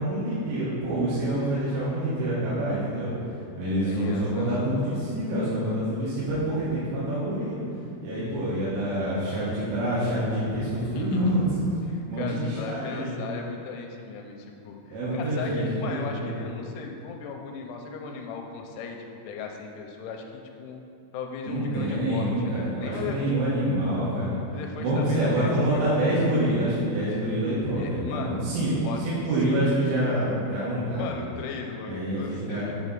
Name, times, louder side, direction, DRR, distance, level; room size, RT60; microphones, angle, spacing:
voice 1, 0.0-3.1 3.6-7.6 8.0-11.4 12.1-13.2 14.9-16.3 21.5-24.4 24.8-28.7 29.0-31.0 31.9-32.7, right 1 dB, 85° right, -9 dB, 3.7 m, -26 dB
voice 2, 3.8-4.6 10.9-11.3 11.9-19.0 19.3-20.8 21.1-23.6 24.5-26.1 27.8-28.4 28.8-29.0 29.5-29.9 31.0-32.8, left 5 dB, 85° left, 2 dB, 3.0 m, -37 dB
8.5 x 4.1 x 5.3 m, 2.6 s
omnidirectional pair, 5.7 m